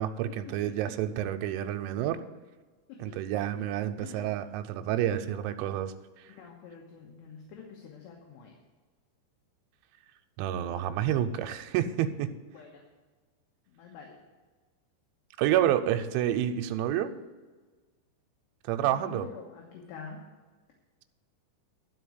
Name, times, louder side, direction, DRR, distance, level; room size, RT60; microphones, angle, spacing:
voice 1, 0.0-2.2 3.0-5.9 10.4-12.3 15.4-17.2 18.6-19.3, right 11 dB, 85° right, 8 dB, 2.9 m, -29 dB
voice 2, 4.0-4.4 6.3-8.5 12.5-12.8 13.7-14.2 18.8-20.2, left 6 dB, 70° left, 0 dB, 3.1 m, -46 dB
12.0 x 5.2 x 8.0 m, 1.3 s
omnidirectional pair, 5.4 m